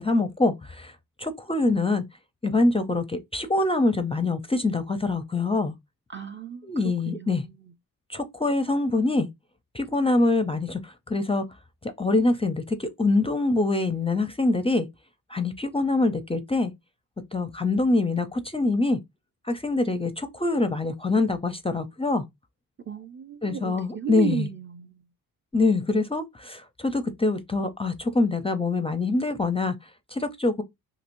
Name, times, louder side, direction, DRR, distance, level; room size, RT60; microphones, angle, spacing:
voice 1, 0.0-2.0 2.4-5.7 6.6-7.4 8.1-9.3 9.7-11.5 11.8-14.9 15.3-16.7 17.3-19.0 19.5-22.2 23.4-24.5 25.5-29.7 30.1-30.6, left 2 dB, 15° left, 0.5 m, -24 dB
voice 2, 6.1-7.7 22.8-25.1, right 8 dB, 30° right, 0.5 m, -35 dB
2.9 x 2.7 x 2.6 m
cardioid pair, 70°, 37 cm